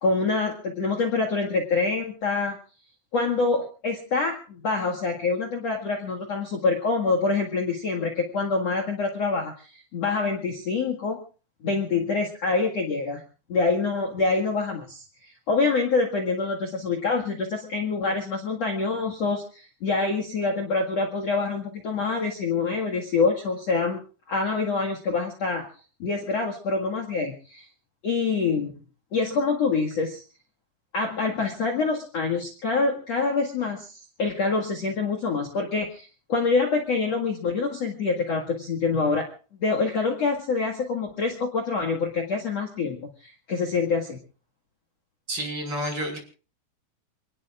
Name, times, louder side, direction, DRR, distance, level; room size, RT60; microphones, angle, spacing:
voice 1, 0.0-2.6 3.1-11.2 11.6-13.2 13.5-15.0 15.5-24.0 24.3-25.7 26.0-27.7 28.0-28.7 29.1-30.2 30.9-39.3 39.6-44.2, left 4 dB, 50° left, 3 dB, 2.4 m, -26 dB
voice 2, 45.3-46.2, equal, 25° right, 3 dB, 6.4 m, -29 dB
29.0 x 19.0 x 2.5 m, 0.38 s
omnidirectional pair, 4.9 m